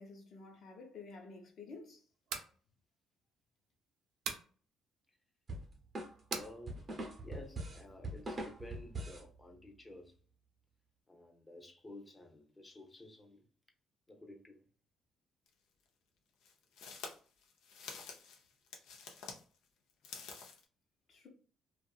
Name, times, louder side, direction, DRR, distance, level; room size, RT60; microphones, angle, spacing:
voice 1, 0.0-2.0 21.1-21.3, left 3 dB, 60° left, 1.0 m, -51 dB
sound 1, 2.1-2.5 4.2-4.5 6.3-6.5, right 6 dB, 80° right, 0.5 m, -40 dB
sound 2, 5.5-9.3, right 1 dB, 35° right, 0.7 m, -42 dB
voice 2, 6.3-6.8 7.2-10.2 11.1-13.4 14.1-14.6, left 1 dB, 15° left, 0.7 m, -53 dB
sound 3, 15.5-15.6 16.4-19.4 19.9-20.6, left 5 dB, 85° left, 0.6 m, -49 dB
2.6 x 2.4 x 2.3 m
cardioid pair, 105°, 0 cm